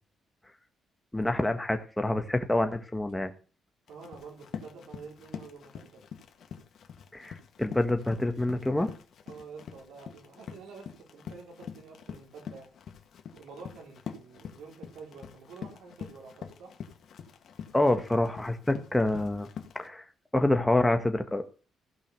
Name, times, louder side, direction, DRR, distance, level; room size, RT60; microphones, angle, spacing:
voice 1, 1.1-3.3 7.1-8.9 17.7-19.5 19.7-20.0 20.3-21.4, left 1 dB, 10° left, 7 dB, 1.6 m, -27 dB
Run, 3.9-19.9, left 7 dB, 60° left, 1.8 m, -45 dB
voice 2, 3.9-6.1 9.3-12.7 13.4-16.7, right 5 dB, 85° right, -1 dB, 4.8 m, -48 dB
16.0 x 5.7 x 6.8 m, 0.37 s
cardioid pair, 90°, 0 cm